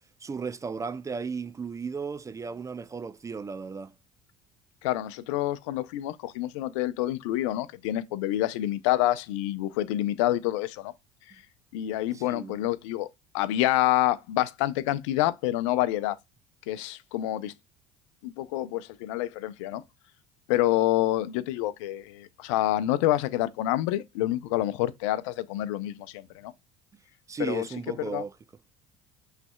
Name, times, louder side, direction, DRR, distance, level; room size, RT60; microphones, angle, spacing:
voice 1, 0.2-3.9 12.1-12.6 27.3-28.4, right 5 dB, 20° right, 0.4 m, -35 dB
voice 2, 4.8-10.9 11.7-13.1 13.3-16.2 16.7-17.5 18.2-19.8 20.5-26.5 27.4-27.6 28.0-28.2, left 14 dB, 80° left, 0.5 m, -27 dB
5.9 x 3.2 x 2.2 m
supercardioid pair, 80°, 16 cm